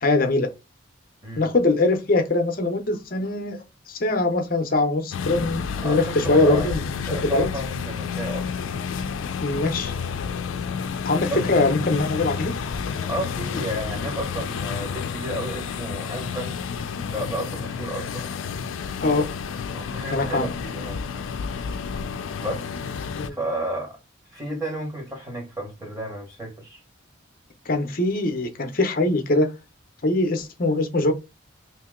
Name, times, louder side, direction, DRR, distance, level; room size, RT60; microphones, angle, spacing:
voice 1, 0.0-0.5 1.4-6.8 7.2-7.5 9.4-9.9 11.0-12.5 19.0-19.3 20.1-20.5 23.1-23.4 27.7-29.5 30.0-31.1, left 2 dB, 45° left, 0.6 m, -22 dB
sound 1, 5.1-23.3, left 6 dB, 80° left, 0.4 m, -30 dB
voice 2, 5.8-6.8 7.1-8.6 11.3-11.4 13.0-16.6 17.1-18.3 19.1-19.3 19.7-21.0 22.4-22.7 23.3-24.0 24.3-26.8, right 1 dB, 15° right, 1.1 m, -32 dB
2.9 x 2.8 x 3.6 m
head